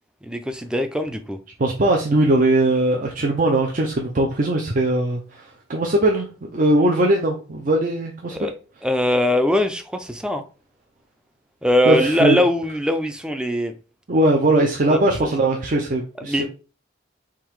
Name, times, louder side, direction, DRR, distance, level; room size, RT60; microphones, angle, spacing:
voice 1, 0.2-1.4 8.3-8.5 8.8-10.4 11.6-13.7 14.9-15.0 16.3-16.4, left 1 dB, 5° right, 0.4 m, -21 dB
voice 2, 1.6-8.5 11.9-12.4 14.1-16.4, right 1 dB, 45° right, 0.6 m, -20 dB
3.7 x 2.8 x 4.6 m
head